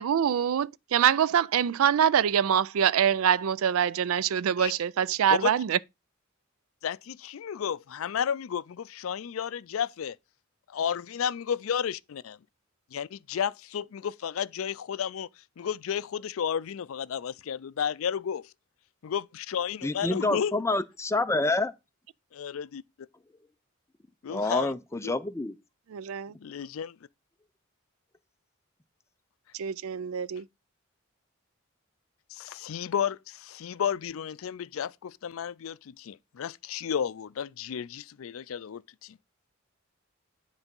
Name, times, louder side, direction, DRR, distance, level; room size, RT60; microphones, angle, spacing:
voice 1, 0.0-5.8 25.9-26.3 29.6-30.4, right 8 dB, 85° right, 0.4 m, -24 dB
voice 2, 6.8-10.2 10.7-12.4 12.9-18.5 19.0-20.5 22.3-22.8 24.2-24.7 25.0-25.1 26.4-27.0 32.3-39.2, left 8 dB, 80° left, 0.4 m, -32 dB
voice 3, 19.8-21.7 24.3-25.5, left 2 dB, 15° left, 0.5 m, -27 dB
9.6 x 4.0 x 5.3 m
head